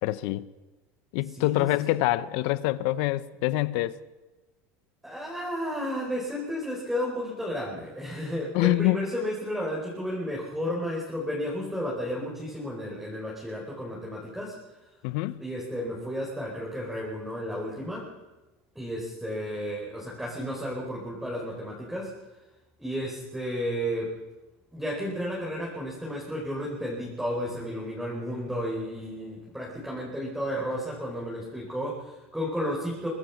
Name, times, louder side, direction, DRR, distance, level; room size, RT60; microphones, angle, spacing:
voice 1, 0.0-0.5 1.1-4.0 8.5-9.0 15.0-15.4, left 17 dB, 70° left, 0.9 m, -25 dB
voice 2, 1.3-2.0 5.0-14.5 15.4-18.1 18.7-22.1 22.8-24.1 24.7-33.1, equal, 5° right, 4.8 m, -32 dB
24.0 x 20.0 x 6.0 m
cardioid pair, 145°, 7 cm